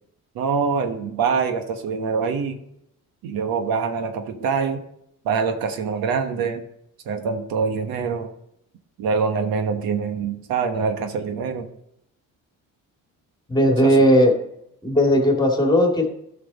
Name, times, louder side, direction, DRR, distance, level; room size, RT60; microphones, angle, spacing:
voice 1, 0.3-2.6 3.2-4.8 5.2-6.6 7.0-8.3 9.0-11.7 13.8-14.0, right 5 dB, 80° right, 7 dB, 1.2 m, -24 dB
voice 2, 13.5-14.3 14.8-16.1, equal, 10° left, 2 dB, 2.2 m, -17 dB
13.0 x 6.0 x 4.1 m, 0.77 s
cardioid pair, 120°, 34 cm